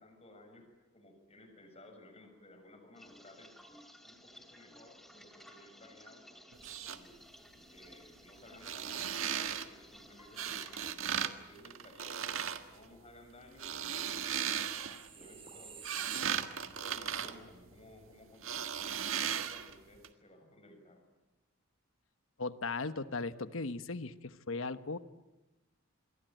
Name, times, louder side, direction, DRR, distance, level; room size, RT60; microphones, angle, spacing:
voice 1, 0.0-3.5 4.0-6.2 6.8-14.5 15.1-16.4 16.7-21.0, left 1 dB, 30° left, 4 dB, 6.8 m, -57 dB
sound 1, 2.9-10.9, equal, ahead, 2.5 m, -57 dB
sound 2, 6.5-7.0 8.5-9.7 10.4-11.3 11.6-12.6 13.4-15.1 15.6-18.0 18.4-19.7 20.0-20.1, right 8 dB, 75° right, 1.6 m, -36 dB
sound 3, 14.1-16.9 17.2-17.4, right 6 dB, 25° right, 3.9 m, -52 dB
voice 2, 22.4-25.0, left 3 dB, 75° left, 12 dB, 1.2 m, -37 dB
27.0 x 23.0 x 9.1 m, 1.1 s
head